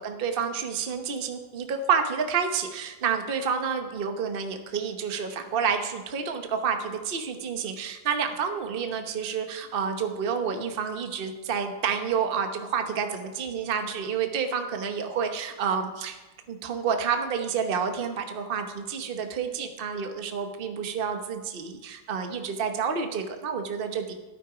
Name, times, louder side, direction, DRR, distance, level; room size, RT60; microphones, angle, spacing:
voice 1, 0.0-16.2 16.5-24.1, right 6 dB, 40° right, 6 dB, 1.1 m, -29 dB
13.5 x 12.0 x 5.0 m, 1.1 s
omnidirectional pair, 1.8 m